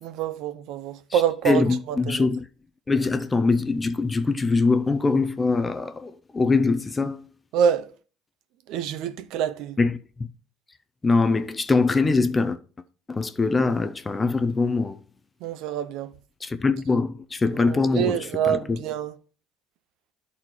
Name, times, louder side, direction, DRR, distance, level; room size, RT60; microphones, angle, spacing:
voice 1, 0.0-2.3 7.5-7.9 8.7-9.8 15.4-16.1 17.7-19.1, right 8 dB, 60° right, 0.6 m, -26 dB
voice 2, 1.1-2.5 2.9-7.2 9.8-10.3 11.0-12.6 13.1-15.0 16.4-18.8, left 3 dB, 15° left, 0.4 m, -23 dB
11.5 x 4.2 x 4.5 m
cardioid pair, 160°, 0 cm